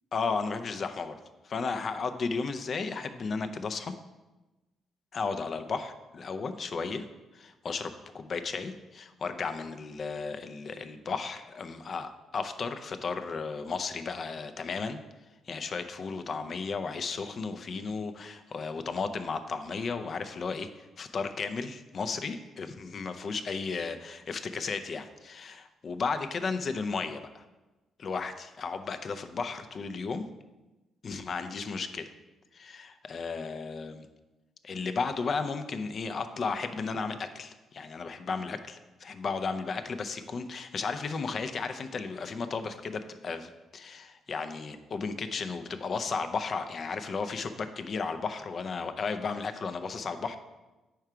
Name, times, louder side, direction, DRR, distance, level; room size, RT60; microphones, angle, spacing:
voice 1, 0.1-1.1 1.4-3.9 5.1-7.0 7.3-15.0 15.5-27.4 28.0-30.3 31.0-32.1 32.5-34.1 34.6-50.4, left 4 dB, 50° left, 9 dB, 0.4 m, -34 dB
4.6 x 4.5 x 4.8 m, 1.1 s
cardioid pair, 90°, 0 cm